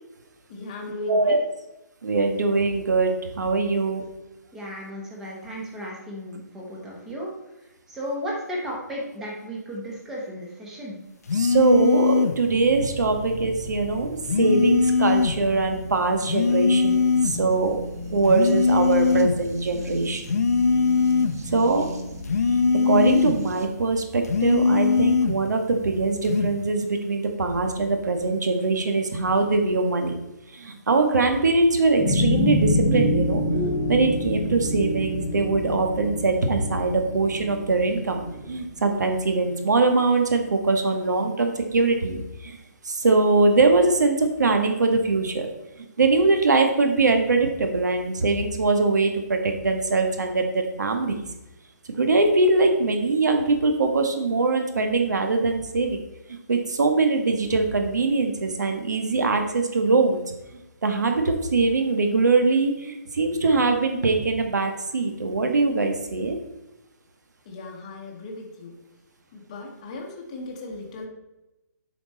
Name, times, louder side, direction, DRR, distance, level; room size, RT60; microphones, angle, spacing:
voice 1, 0.5-1.5 67.4-68.8 69.3-71.1, left 2 dB, 20° left, 0 dB, 1.1 m, -37 dB
voice 2, 1.1-1.4 2.0-4.1 11.3-17.8 18.1-20.2 21.4-21.8 22.8-30.1 30.5-33.4 33.9-42.6 42.8-45.5 46.0-51.3 52.0-56.0 56.5-60.2 60.8-66.4, right 3 dB, 75° right, 5 dB, 1.7 m, -22 dB
voice 3, 4.5-7.3 7.6-11.0 22.6-22.7, equal, 5° right, -3 dB, 1.0 m, -34 dB
sound 1, 11.3-12.4 14.3-15.4 16.3-17.4 18.3-19.4 20.2-21.4 22.3-23.4 24.2-25.4 26.2-26.6, left 5 dB, 60° left, 0.9 m, -21 dB
sound 2, 12.5-23.7, equal, 60° right, 1.5 m, -36 dB
sound 3, 32.0-38.5, left 1 dB, 25° right, 1.8 m, -26 dB
9.2 x 6.2 x 4.2 m, 0.97 s
hypercardioid pair, 180°, 10 cm